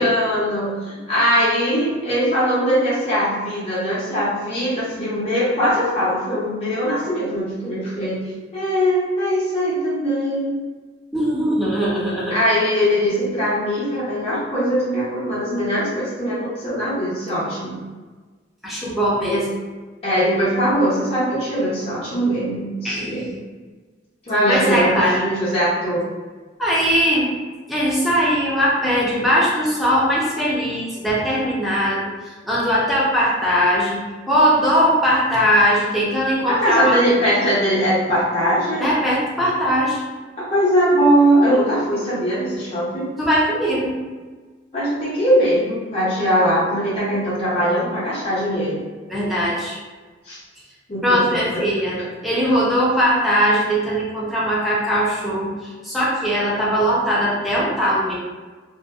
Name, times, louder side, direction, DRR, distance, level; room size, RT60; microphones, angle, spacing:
voice 1, 0.0-8.2 8.5-10.6 12.3-17.8 19.2-19.4 20.0-23.3 24.2-26.0 36.4-38.9 40.4-43.1 44.7-48.8 50.2-50.4 50.9-51.2 51.5-51.6, equal, 35° left, -11 dB, 0.7 m, -21 dB
voice 2, 11.1-12.4 18.6-19.4 22.8-23.1 24.5-25.2 26.6-27.3 27.7-32.1 32.5-34.0 34.3-37.0 38.8-40.0 43.2-44.0 49.1-49.8 51.0-52.0 52.2-55.5 55.8-58.1, equal, ahead, -7 dB, 0.5 m, -20 dB
2.6 x 2.1 x 2.3 m, 1.3 s
head